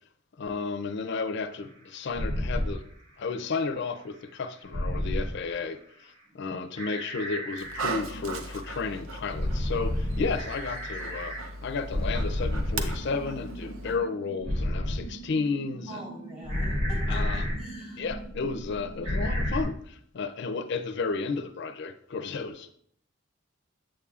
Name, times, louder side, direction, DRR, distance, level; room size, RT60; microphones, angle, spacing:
voice 1, 0.4-2.9 3.2-16.0 17.1-17.5 18.0-22.7, left 4 dB, 55° left, 0.4 m, -33 dB
sound 1, 2.1-2.7 4.7-5.3 6.8-8.3 9.3-11.4 11.8-19.6, left 1 dB, 65° right, 2.4 m, -31 dB
Dog, 7.5-14.0, right 3 dB, 85° right, 0.7 m, -38 dB
voice 2, 15.9-17.2 17.6-18.0, equal, 40° right, 3.4 m, -43 dB
8.4 x 7.6 x 2.4 m
head